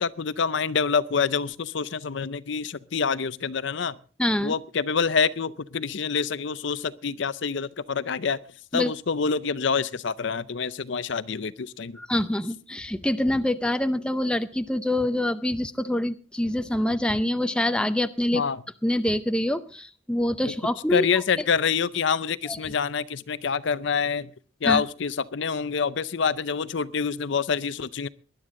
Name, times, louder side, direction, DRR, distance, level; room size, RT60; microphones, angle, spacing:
voice 1, 0.0-4.0 4.4-8.4 8.7-12.0 18.3-18.6 20.9-24.3 24.6-28.1, left 6 dB, 60° left, 16 dB, 0.5 m, -26 dB
voice 2, 4.2-4.5 8.7-8.9 12.0-18.4 18.8-21.1 22.5-22.6 24.6-24.8, left 1 dB, 5° left, 9 dB, 0.6 m, -25 dB
20.0 x 11.5 x 3.7 m, 0.38 s
head